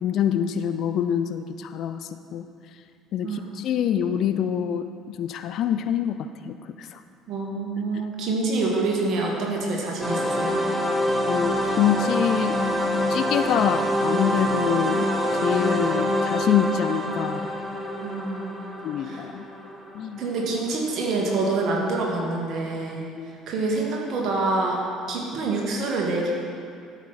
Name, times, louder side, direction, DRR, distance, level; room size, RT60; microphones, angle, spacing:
voice 1, 0.0-2.5 3.1-6.2 6.4-7.0 7.9-8.0 11.3-12.6 13.1-15.1 15.4-17.5 18.8-19.5 19.9-20.2 23.2-23.3, left 9 dB, 55° left, 10 dB, 0.4 m, -25 dB
voice 2, 7.3-10.6 18.0-19.2 20.2-23.0 23.5-24.8 25.1-26.3, right 3 dB, 50° right, -1 dB, 1.9 m, -26 dB
sound 1, 10.0-20.7, equal, 5° right, 1.4 m, -26 dB
12.5 x 5.9 x 4.2 m, 2.3 s
figure-of-eight pair, 55°, 0 cm